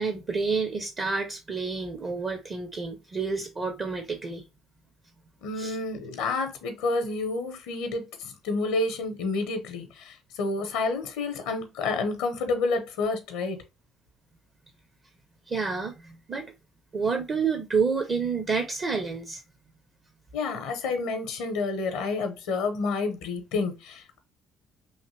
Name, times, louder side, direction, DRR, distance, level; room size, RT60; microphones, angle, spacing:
voice 1, 0.0-4.4 5.6-5.8 15.5-16.5 16.9-19.4, right 5 dB, 45° right, 0.7 m, -29 dB
voice 2, 5.4-13.6 20.3-24.2, left 3 dB, 80° left, 0.7 m, -29 dB
3.1 x 2.6 x 3.0 m
hypercardioid pair, 65°, 0 cm